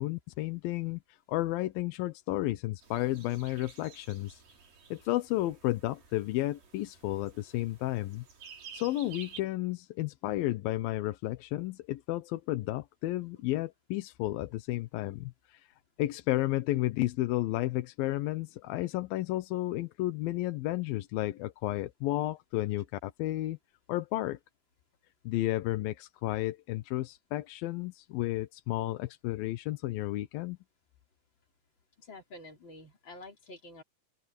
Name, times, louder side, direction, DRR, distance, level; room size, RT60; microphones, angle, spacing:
voice 1, 0.0-4.4 4.9-8.2 8.7-23.6 23.9-24.4 25.3-30.6, left 16 dB, 90° left, 2.7 m, -32 dB
sound 1, 2.8-9.4, right 6 dB, 75° right, 6.3 m, -52 dB
voice 2, 32.0-33.8, left 2 dB, 35° left, 4.4 m, -48 dB
open air
omnidirectional pair, 4.0 m